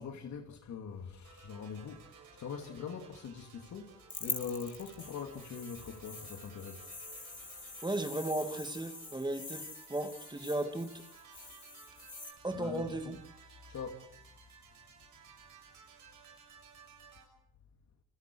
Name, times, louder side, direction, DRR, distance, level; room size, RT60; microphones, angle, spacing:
voice 1, 0.0-6.9 12.5-13.2 13.7-14.0, left 6 dB, 65° left, 2.8 m, -43 dB
sound 1, 1.2-17.2, right 6 dB, 80° right, 6.9 m, -57 dB
sound 2, 4.1-12.3, left 3 dB, 25° left, 4.9 m, -45 dB
voice 2, 7.8-11.0 11.4-11.5 12.4-13.2, right 1 dB, 15° right, 2.7 m, -36 dB
27.5 x 26.0 x 4.8 m
cardioid pair, 90°, 30 cm